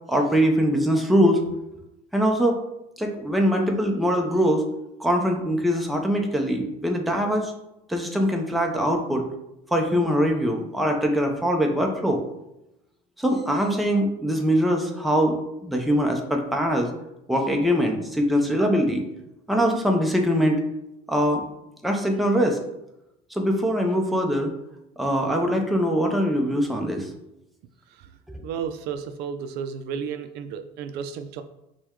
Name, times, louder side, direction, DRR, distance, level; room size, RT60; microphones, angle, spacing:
voice 1, 0.1-1.4 2.1-2.6 3.0-4.7 5.0-7.5 7.9-9.2 9.7-12.2 13.2-15.4 15.6-16.9 17.3-19.0 19.5-20.6 21.1-21.4 21.8-22.6 23.3-24.5 25.0-27.1, equal, ahead, 2 dB, 0.5 m, -22 dB
voice 2, 28.4-31.4, right 7 dB, 65° right, 8 dB, 0.4 m, -32 dB
5.8 x 2.2 x 3.6 m, 0.87 s
cardioid pair, 135°, 18 cm